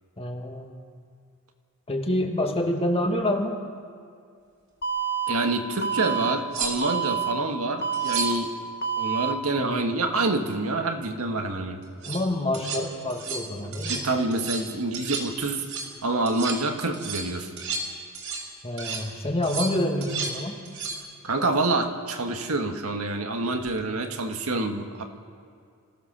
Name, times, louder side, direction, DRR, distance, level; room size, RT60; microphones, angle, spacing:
voice 1, 0.2-0.7 1.9-3.6 9.6-9.9 12.0-14.1 18.6-20.6, left 1 dB, 25° left, 2 dB, 2.2 m, -27 dB
Alarm, 4.8-5.3 5.8-6.3 6.8-7.3 7.8-8.3 8.8-9.3, right 8 dB, 45° left, 1.4 m, -27 dB
voice 2, 5.3-8.5 9.0-11.8 13.9-15.6 16.0-17.5 21.2-25.0, right 2 dB, 85° right, 5 dB, 1.7 m, -27 dB
sound 1, 5.9-6.0 6.5-7.1 7.9-8.5 11.8-12.2 12.5-12.8 13.1-13.5 13.7-14.1 14.3-14.7 14.9-15.3 15.6-15.9 16.3-16.6 16.9-18.5 18.8-19.1 19.4-20.4 20.6-21.0 23.6-23.8, right 4 dB, 70° right, 4.0 m, -33 dB
27.0 x 16.0 x 6.8 m, 2.3 s
head